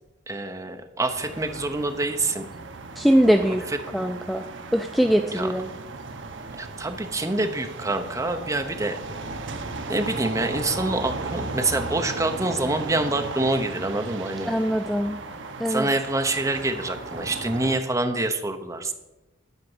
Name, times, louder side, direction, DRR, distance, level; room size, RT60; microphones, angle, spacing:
voice 1, 0.3-2.5 3.7-3.8 5.3-5.5 6.6-9.0 9.9-14.5 15.7-18.9, right 2 dB, 15° right, 6 dB, 0.8 m, -26 dB
sound 1, 1.1-17.8, right 3 dB, 60° right, 0.9 m, -36 dB
voice 2, 3.0-3.7 3.9-4.4 4.7-5.7 14.5-15.2 15.6-15.9, equal, ahead, 7 dB, 0.3 m, -21 dB
10.5 x 5.1 x 7.8 m, 1.0 s
head